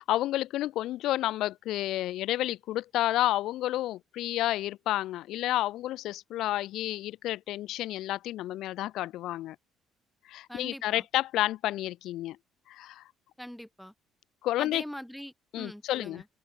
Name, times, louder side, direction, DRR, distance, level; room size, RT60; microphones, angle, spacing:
voice 1, 0.0-9.6 10.3-12.4 12.7-13.0 14.4-14.8 15.5-16.2, left 15 dB, 70° left, 1.8 m, -30 dB
voice 2, 10.5-11.0 13.4-13.9 14.6-16.3, equal, ahead, 2.0 m, -43 dB
open air
cardioid pair, 145°, 0 cm